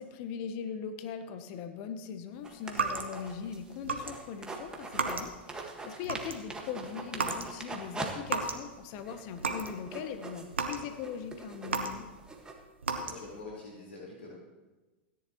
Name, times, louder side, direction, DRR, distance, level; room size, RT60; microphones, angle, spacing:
voice 1, 0.0-12.1, left 7 dB, 50° left, 9 dB, 0.9 m, -40 dB
sound 1, 2.4-5.2 5.5-8.1 8.5-8.6 9.0-12.5, right 3 dB, 15° right, 1.6 m, -42 dB
sound 2, 2.7-3.4 3.8-4.1 4.4-5.5 5.9-6.5 7.1-7.5 7.8-8.7 9.0-9.8 10.1-12.3 12.8-13.4, right 4 dB, 90° right, 1.1 m, -34 dB
voice 2, 13.0-14.3, left 3 dB, 85° left, -4 dB, 4.1 m, -45 dB
16.5 x 10.5 x 3.0 m, 1.2 s
hypercardioid pair, 100°, 6 cm